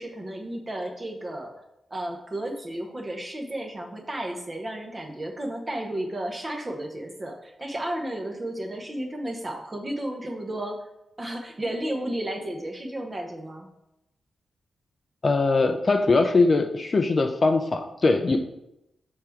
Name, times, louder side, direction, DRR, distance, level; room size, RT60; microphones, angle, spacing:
voice 1, 0.0-1.5 1.9-10.8 11.2-13.7, right 1 dB, 20° right, 3 dB, 0.8 m, -33 dB
voice 2, 15.2-18.4, left 3 dB, 30° left, 5 dB, 0.4 m, -21 dB
6.5 x 3.6 x 4.4 m, 0.87 s
wide cardioid pair, 165°, 0 cm